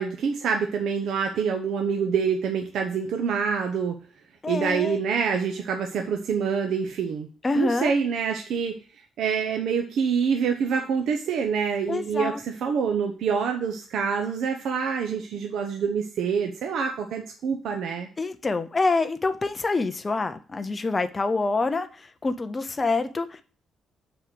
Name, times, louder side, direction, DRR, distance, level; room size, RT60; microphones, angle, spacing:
voice 1, 0.0-4.0 4.5-7.3 7.5-8.7 9.2-18.1, right 6 dB, 75° right, 3 dB, 0.9 m, -26 dB
voice 2, 4.4-5.0 7.4-7.9 11.9-12.4 18.2-23.4, left 3 dB, 20° left, 9 dB, 0.7 m, -26 dB
6.3 x 4.9 x 6.1 m, 0.40 s
cardioid pair, 155°, 0 cm